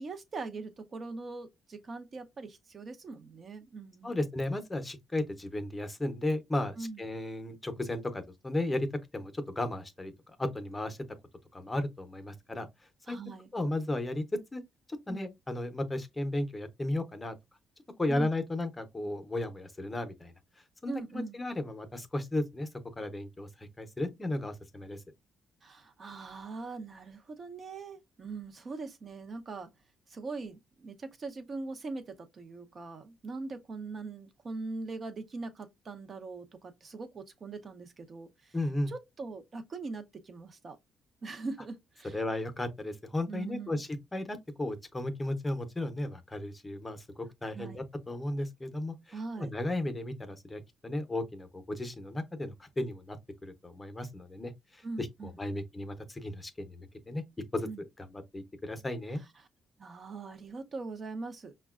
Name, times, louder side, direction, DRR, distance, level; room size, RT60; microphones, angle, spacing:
voice 1, 0.0-4.2 6.8-7.0 13.1-13.5 15.1-15.3 18.1-18.3 20.9-21.4 25.6-29.7 30.1-38.6 38.9-40.8 41.2-42.2 43.3-43.8 47.5-47.8 49.1-49.5 54.8-55.6 57.7-57.8 59.4-59.5 59.8-61.5, right 3 dB, 45° right, 0.6 m, -41 dB
voice 2, 4.0-8.9 9.1-11.0 11.5-12.7 13.1-13.2 13.5-14.2 14.5-14.6 15.1-17.4 18.0-20.3 20.8-22.7 23.0-25.0 38.5-38.9 42.1-53.2 53.4-57.2 57.5-59.2, left 1 dB, 20° left, 0.7 m, -35 dB
5.2 x 2.2 x 2.3 m
cardioid pair, 90°, 0 cm